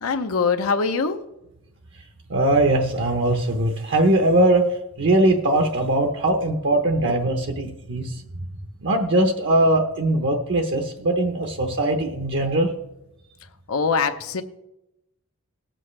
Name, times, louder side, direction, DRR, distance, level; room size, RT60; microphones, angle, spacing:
voice 1, 0.0-1.2 7.0-7.2 13.7-14.4, left 5 dB, 75° left, 7 dB, 0.7 m, -23 dB
voice 2, 2.3-4.6 5.0-8.2 8.8-12.7, right 1 dB, 55° right, 4 dB, 0.9 m, -20 dB
18.5 x 7.6 x 3.2 m, 0.90 s
head